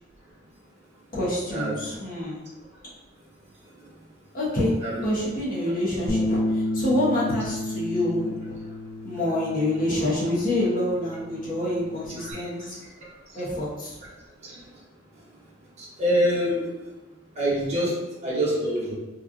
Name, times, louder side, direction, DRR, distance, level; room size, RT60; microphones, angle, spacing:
voice 1, 1.1-2.4 4.3-8.6 9.0-12.8 13.3-14.0, left 1 dB, 45° left, -6 dB, 1.0 m, -27 dB
Bass guitar, 6.1-12.3, left 1 dB, 20° left, 0.4 m, -31 dB
voice 2, 16.0-16.6 17.4-17.9 18.2-18.9, equal, 35° right, -7 dB, 1.0 m, -24 dB
3.1 x 2.4 x 2.5 m, 1.1 s
head